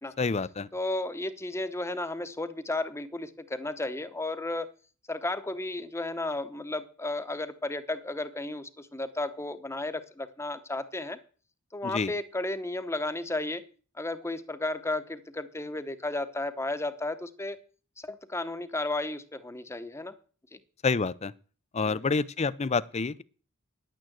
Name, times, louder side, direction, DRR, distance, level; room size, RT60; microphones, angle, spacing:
voice 1, 0.2-0.7 11.8-12.1 20.8-21.3 21.7-23.2, left 4 dB, 30° left, 0.5 m, -28 dB
voice 2, 0.7-4.7 5.1-11.2 11.7-13.6 14.0-17.6 18.0-20.1 20.5-20.6 21.8-22.0, left 2 dB, 15° left, 0.9 m, -33 dB
10.5 x 9.1 x 7.7 m
head